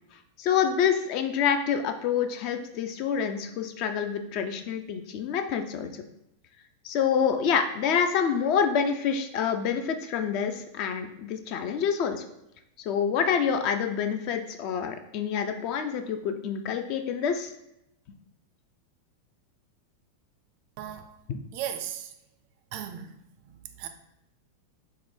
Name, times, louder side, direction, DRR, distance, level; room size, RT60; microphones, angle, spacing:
voice 1, 0.4-5.9 6.8-12.3 12.8-17.5 21.3-21.4, left 7 dB, 45° left, 7 dB, 0.4 m, -27 dB
voice 2, 20.8-21.2 21.5-22.1 22.7-23.9, right 10 dB, 45° right, 8 dB, 0.4 m, -37 dB
4.3 x 2.1 x 3.7 m, 0.81 s
figure-of-eight pair, 90°, 0 cm